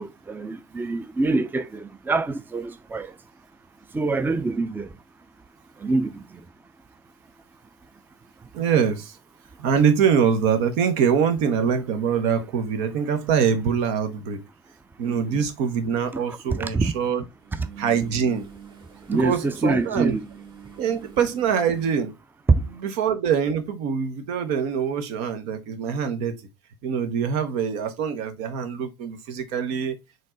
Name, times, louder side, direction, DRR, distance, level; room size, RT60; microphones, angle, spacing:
voice 1, 0.0-3.1 3.9-4.9 5.8-6.2 15.0-15.4 16.1-16.2 16.6-16.9 19.1-20.2, right 3 dB, 15° right, 0.5 m, -26 dB
voice 2, 8.5-9.2 9.6-14.4 15.0-17.2 17.8-18.5 19.1-20.2 20.8-22.1 22.7-26.4 26.8-30.0, right 7 dB, 65° right, 0.8 m, -24 dB
sound 1, 15.5-15.6 17.4-22.0, right 7 dB, 40° right, 1.5 m, -45 dB
4.3 x 3.2 x 3.8 m
figure-of-eight pair, 60°, 13 cm